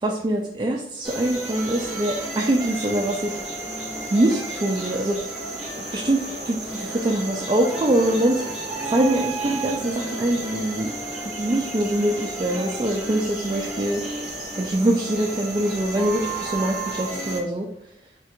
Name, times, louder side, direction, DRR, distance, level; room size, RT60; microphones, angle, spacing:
voice 1, 0.0-3.4 4.1-5.3 5.8-8.6 8.9-10.9 11.3-14.0 14.6-17.7, right 1 dB, 25° right, -1 dB, 0.4 m, -24 dB
sound 1, 1.0-17.4, right 2 dB, 5° right, 1.0 m, -32 dB
4.5 x 2.4 x 4.3 m, 0.77 s
head